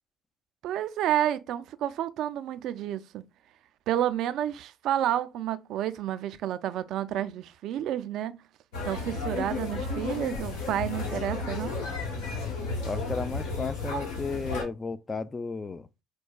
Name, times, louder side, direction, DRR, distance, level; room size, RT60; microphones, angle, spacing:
voice 1, 0.6-3.2 3.9-8.4 8.8-11.8, right 11 dB, 60° right, 0.3 m, -30 dB
sound 1, 8.7-14.6, left 3 dB, 80° left, 1.2 m, -33 dB
voice 2, 12.8-15.9, left 4 dB, 25° left, 0.4 m, -34 dB
4.5 x 2.1 x 2.3 m
hypercardioid pair, 60°, 0 cm